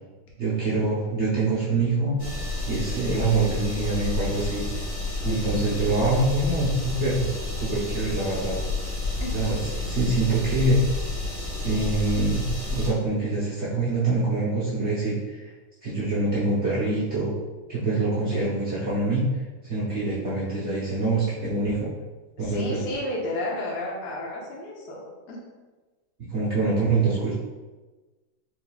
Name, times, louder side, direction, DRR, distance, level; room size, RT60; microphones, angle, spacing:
voice 1, 0.4-2.2 2.7-4.6 5.2-7.3 7.6-8.6 9.3-10.8 11.6-15.4 15.8-17.3 17.7-19.2 19.6-21.9 22.4-22.8 26.2-27.3, right 3 dB, 70° right, -9 dB, 0.6 m, -25 dB
sound 1, 2.2-12.9, left 2 dB, 25° left, 0.8 m, -30 dB
voice 2, 5.2-5.8 9.2-9.4 9.7-9.8 18.3-18.5 22.4-25.4, left 1 dB, 60° left, -3 dB, 0.7 m, -32 dB
4.9 x 3.2 x 2.3 m, 1.2 s
omnidirectional pair, 2.4 m